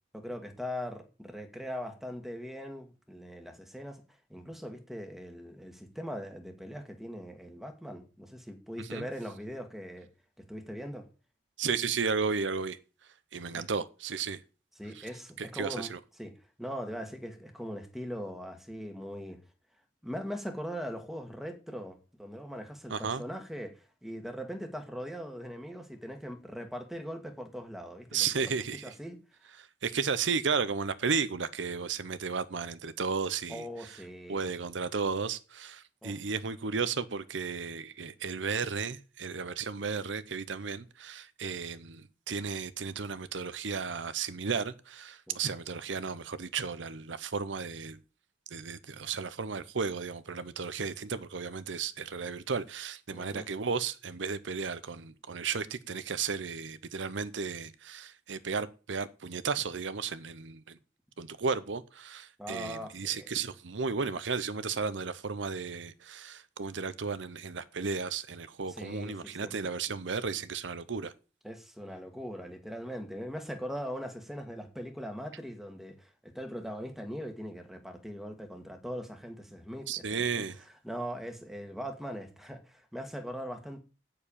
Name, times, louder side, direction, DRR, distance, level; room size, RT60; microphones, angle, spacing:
voice 1, 0.1-4.0 4.3-10.1 10.4-11.1 13.5-13.7 14.8-15.9 16.2-16.3 16.6-19.4 20.0-28.5 28.8-29.2 33.5-34.4 36.0-36.2 45.3-45.5 53.1-53.5 62.4-63.3 68.7-69.5 71.4-80.4 80.8-83.8, equal, ahead, 1.8 m, -40 dB
voice 2, 11.6-12.8 13.3-14.4 14.9-15.1 15.4-16.0 22.9-23.2 28.1-28.9 29.6-34.0 34.3-48.0 48.5-60.8 61.2-71.1 79.9-80.6, right 5 dB, 80° right, 0.8 m, -34 dB
13.5 x 4.7 x 8.7 m
head